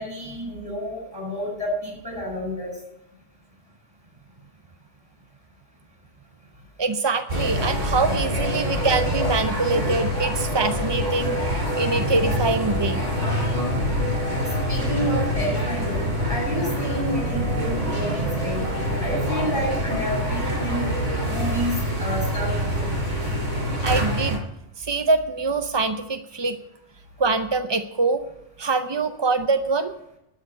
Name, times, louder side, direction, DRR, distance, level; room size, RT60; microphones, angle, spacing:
voice 1, 0.0-2.7 14.7-20.9 21.2-23.0, equal, 20° right, -1 dB, 7.1 m, -30 dB
voice 2, 6.8-13.0 23.8-24.4 24.8-26.6 27.2-28.2 28.6-29.9, right 3 dB, 35° right, 9 dB, 0.4 m, -24 dB
sound 1, 7.3-24.4, equal, 80° right, 5.5 m, -25 dB
13.0 x 6.6 x 9.7 m, 0.81 s
omnidirectional pair, 1.3 m